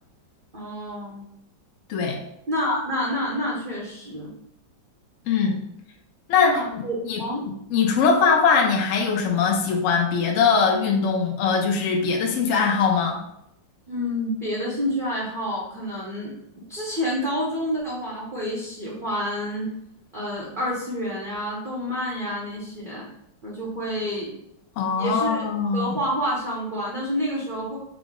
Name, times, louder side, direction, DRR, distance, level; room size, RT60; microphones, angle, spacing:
voice 1, 0.5-1.2 2.5-4.3 6.4-7.5 13.9-16.3 16.7-19.7 20.1-23.1 23.4-24.3 25.0-25.4 25.7-27.8, equal, 50° right, -5 dB, 0.6 m, -28 dB
voice 2, 1.9-2.2 5.3-5.6 6.3-7.2 7.7-13.2 24.8-25.9, left 5 dB, 75° left, 1 dB, 0.7 m, -21 dB
4.8 x 2.0 x 3.6 m, 0.78 s
omnidirectional pair, 1.9 m